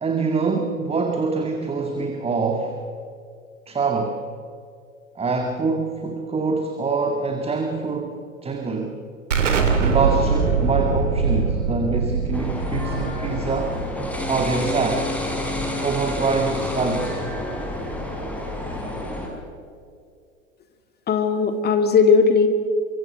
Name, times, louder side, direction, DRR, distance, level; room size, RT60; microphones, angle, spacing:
voice 1, 0.0-2.8 3.7-4.2 5.2-9.0 9.8-13.8 14.2-15.1 15.8-17.2, right 4 dB, 15° right, 4 dB, 2.1 m, -25 dB
Explosion, 9.3-14.7, right 5 dB, 70° right, 3.1 m, -23 dB
sound 1, 12.3-19.3, left 1 dB, 5° left, 5.4 m, -29 dB
voice 2, 21.1-22.5, left 5 dB, 25° left, 7 dB, 2.7 m, -17 dB
24.5 x 24.0 x 6.2 m, 2.3 s
figure-of-eight pair, 85°, 39 cm